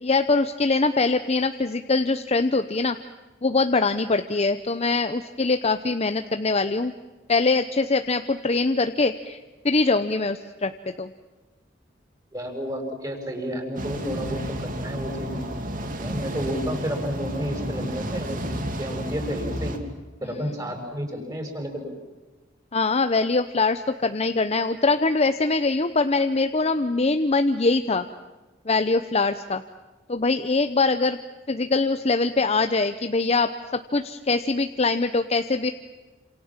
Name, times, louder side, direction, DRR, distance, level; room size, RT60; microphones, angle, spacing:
voice 1, 0.0-3.0 3.4-6.9 7.3-9.4 9.6-10.7 11.0-11.1 22.7-28.1 28.7-29.6 30.1-31.2 31.5-33.5 33.9-35.7, left 3 dB, 35° left, 9 dB, 0.8 m, -23 dB
voice 2, 12.3-15.4 16.0-19.7 20.2-21.9, equal, 20° right, 4 dB, 6.7 m, -31 dB
sound 1, 13.7-19.8, right 1 dB, 45° right, 3.0 m, -31 dB
28.5 x 27.5 x 7.5 m, 1.2 s
head